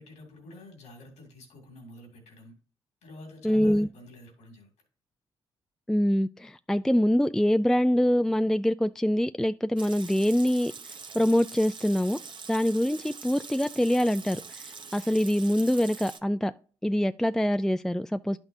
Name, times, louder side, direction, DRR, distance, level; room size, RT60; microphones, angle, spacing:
voice 1, 0.0-2.5 3.0-4.7, left 1 dB, 80° left, 2.4 m, -49 dB
voice 2, 3.4-3.9 5.9-10.7 11.1-12.2 12.5-16.5 16.8-18.4, equal, 5° left, 0.3 m, -24 dB
Water tap faucet / Sink (filling or washing) / Liquid, 9.8-16.2, right 5 dB, 45° right, 1.0 m, -44 dB
11.0 x 6.0 x 2.7 m
supercardioid pair, 50°, 11 cm